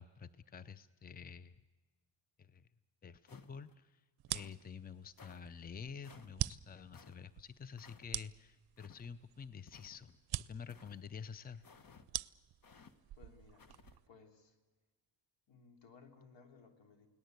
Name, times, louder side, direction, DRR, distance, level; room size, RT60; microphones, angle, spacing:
voice 1, 0.0-1.6 2.4-2.7 3.0-4.0 4.3-10.1 10.5-11.6, left 6 dB, 20° left, 15 dB, 0.7 m, -49 dB
sound 1, 3.3-3.8 4.3-4.6 5.2-5.4 6.0-6.3 6.9-7.2 7.8-8.1 8.8-9.1 9.7-10.2 10.7-11.0 11.6-12.1 12.6-12.9 13.6-14.0, left 5 dB, 45° left, 1.7 m, -59 dB
sound 2, 4.2-14.1, right 14 dB, 55° right, 0.7 m, -45 dB
voice 2, 12.9-13.7 14.1-14.6 15.5-17.1, left 5 dB, 70° left, 5 dB, 3.5 m, -61 dB
29.0 x 18.5 x 8.1 m, 1.3 s
cardioid pair, 80°, 46 cm